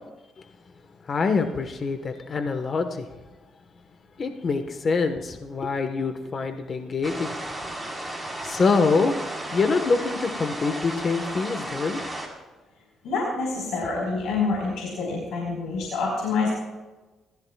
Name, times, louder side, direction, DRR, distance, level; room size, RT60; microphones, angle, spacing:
voice 1, 1.0-3.2 4.2-7.3 7.8-7.9 8.4-9.2 9.5-12.0, left 4 dB, 45° left, 6 dB, 1.4 m, -25 dB
sound 1, 7.0-12.3, right 1 dB, ahead, 4.5 m, -34 dB
voice 2, 13.0-16.5, left 4 dB, 85° left, -1 dB, 4.7 m, -27 dB
29.0 x 15.0 x 2.4 m, 1.2 s
cardioid pair, 90°, 0 cm